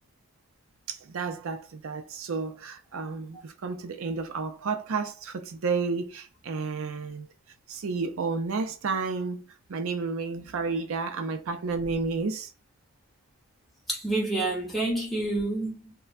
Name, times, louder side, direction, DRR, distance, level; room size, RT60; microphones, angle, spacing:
voice 1, 0.9-7.3 7.7-9.4 9.7-12.5, right 4 dB, 80° right, 0.5 m, -31 dB
voice 2, 13.9-15.9, right 2 dB, ahead, 0.9 m, -28 dB
3.3 x 2.2 x 2.4 m
head